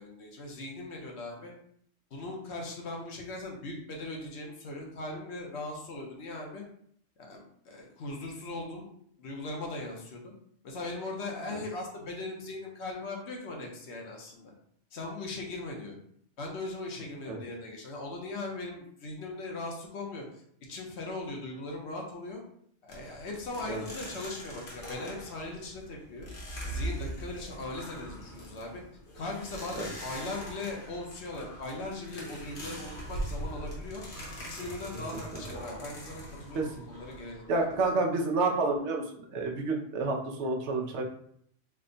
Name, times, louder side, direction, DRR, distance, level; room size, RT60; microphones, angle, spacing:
voice 1, 0.0-1.5 2.1-6.6 7.2-8.9 9.2-10.3 10.6-14.5 14.9-16.0 16.4-20.2 20.7-22.4 22.8-26.3 26.6-28.8 29.1-34.0 34.5-37.7, left 2 dB, 70° left, 0 dB, 1.0 m, -39 dB
sound 1, 22.9-37.9, equal, 50° left, 1.1 m, -41 dB
voice 2, 37.5-39.0 39.3-41.0, right 3 dB, 75° right, 1 dB, 0.9 m, -29 dB
3.4 x 2.2 x 3.8 m, 0.66 s
omnidirectional pair, 1.2 m